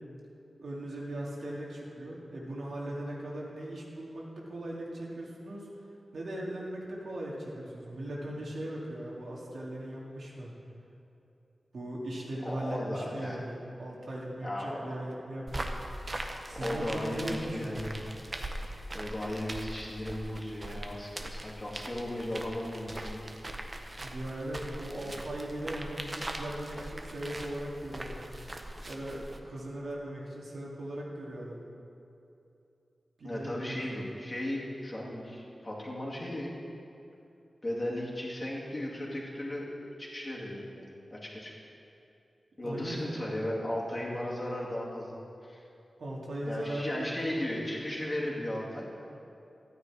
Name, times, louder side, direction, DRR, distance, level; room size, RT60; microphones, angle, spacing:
voice 1, 0.6-5.7 6.1-10.5 11.7-15.8 16.5-17.9 24.0-28.2 28.8-31.6 33.2-34.1 42.6-43.0 46.0-47.1, right 1 dB, 80° right, -4 dB, 2.3 m, -39 dB
voice 2, 12.4-13.4 14.4-14.8 16.6-18.0 18.9-23.3 25.1-25.2 33.2-36.5 37.6-39.7 40.0-41.5 42.6-45.6 46.4-48.9, left 1 dB, 25° left, -4 dB, 2.4 m, -36 dB
sound 1, 15.5-29.4, right 1 dB, 30° right, 0.9 m, -41 dB
14.0 x 9.4 x 4.8 m, 2.8 s
wide cardioid pair, 120°, 0 cm